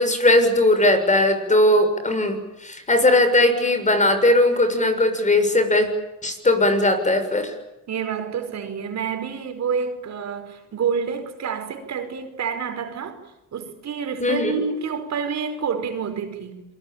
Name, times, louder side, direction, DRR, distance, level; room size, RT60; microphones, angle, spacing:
voice 1, 0.0-5.9 6.2-7.5 14.2-14.6, left 1 dB, 25° left, 6.8 m, -19 dB
voice 2, 7.9-13.2 13.5-16.6, right 6 dB, 60° right, 5.1 m, -28 dB
28.0 x 23.0 x 8.9 m
cardioid pair, 90°, 30 cm